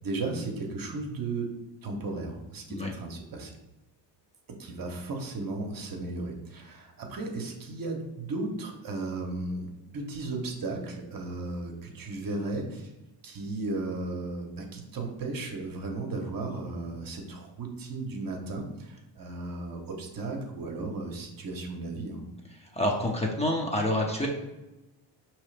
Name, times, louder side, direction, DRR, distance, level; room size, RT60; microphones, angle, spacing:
voice 1, 0.0-1.5 1.8-3.5 4.5-12.9 13.2-22.2, right 2 dB, 45° right, 2 dB, 1.0 m, -35 dB
voice 2, 22.7-24.3, left 1 dB, 15° left, -1 dB, 0.7 m, -27 dB
4.7 x 3.1 x 3.2 m, 1.0 s
cardioid pair, 85°, 47 cm